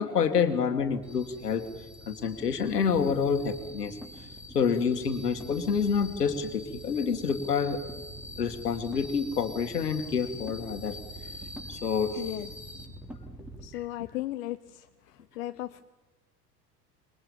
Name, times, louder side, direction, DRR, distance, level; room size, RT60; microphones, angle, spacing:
voice 1, 0.0-1.7 2.1-4.0 4.5-8.0 8.4-11.0 11.7-12.2 13.7-13.8, left 6 dB, 75° left, 8 dB, 2.3 m, -28 dB
sound 1, 1.0-13.7, equal, ahead, 4.1 m, -44 dB
voice 2, 12.2-12.5 13.6-14.8 15.4-15.8, left 16 dB, 60° left, 11 dB, 0.9 m, -35 dB
27.0 x 22.0 x 7.3 m, 1.1 s
figure-of-eight pair, 70°, 47 cm